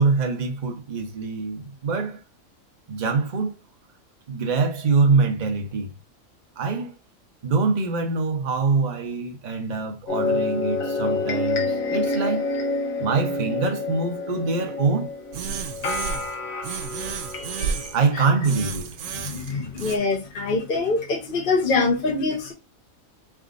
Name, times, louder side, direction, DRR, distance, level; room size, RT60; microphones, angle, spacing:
voice 1, 0.0-2.2 2.9-3.6 4.3-5.9 6.6-6.9 7.4-12.5 13.0-15.1 17.9-18.9, right 4 dB, 40° right, 0.8 m, -24 dB
sound 1, 10.1-18.2, left 3 dB, 80° left, 1.4 m, -28 dB
sound 2, 15.3-16.4 16.6-18.0 18.4-20.0, right 6 dB, 75° right, 1.0 m, -32 dB
voice 2, 19.1-22.5, left 3 dB, 45° left, 1.0 m, -24 dB
4.2 x 3.6 x 2.5 m
omnidirectional pair, 1.4 m